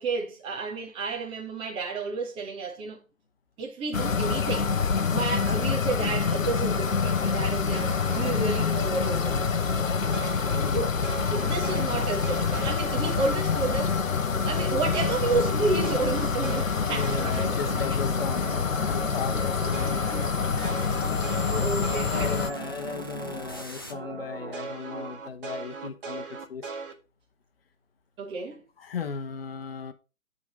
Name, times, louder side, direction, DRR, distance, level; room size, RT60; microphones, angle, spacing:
voice 1, 0.0-3.0 3.6-4.7 5.1-9.4 10.7-10.9 11.2-14.0 14.4-18.0 21.5-22.6 28.2-28.6, right 3 dB, 15° right, 1.4 m, -31 dB
sound 1, 3.9-22.5, left 5 dB, 65° left, 0.9 m, -26 dB
sound 2, 7.7-14.0 14.3-23.6 23.9-26.9, right 5 dB, 40° right, 1.7 m, -38 dB
sound 3, 15.8-23.9, left 2 dB, 15° left, 0.4 m, -45 dB
voice 2, 16.8-18.5 18.9-20.1 21.4-21.5 22.1-26.7 28.8-29.9, left 6 dB, 45° left, 1.2 m, -36 dB
11.0 x 4.1 x 5.2 m
figure-of-eight pair, 135°, 42 cm